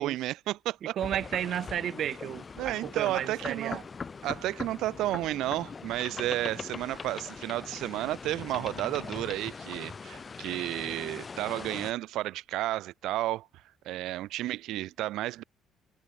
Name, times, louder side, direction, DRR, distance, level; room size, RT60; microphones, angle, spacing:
voice 1, 0.0-0.9 2.6-3.8 4.2-13.5 13.8-15.4, right 15 dB, 80° right, 0.9 m, -32 dB
sound 1, 1.0-11.9, left 5 dB, 35° left, 2.4 m, -41 dB
voice 2, 1.0-3.8, right 10 dB, 65° right, 0.5 m, -33 dB
cardioid pair, 95°, 0 cm